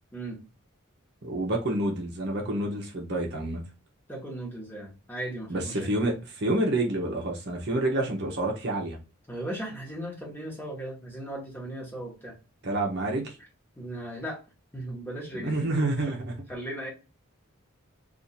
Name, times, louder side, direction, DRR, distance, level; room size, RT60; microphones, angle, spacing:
voice 1, 1.2-3.6 5.5-9.0 12.6-13.4 15.3-16.3, right 1 dB, 50° right, 0.7 m, -28 dB
voice 2, 4.1-5.9 9.3-12.3 13.8-14.4 14.7-15.8 16.1-16.2 16.5-16.9, right 1 dB, 10° left, 1.2 m, -37 dB
2.6 x 2.5 x 4.1 m
head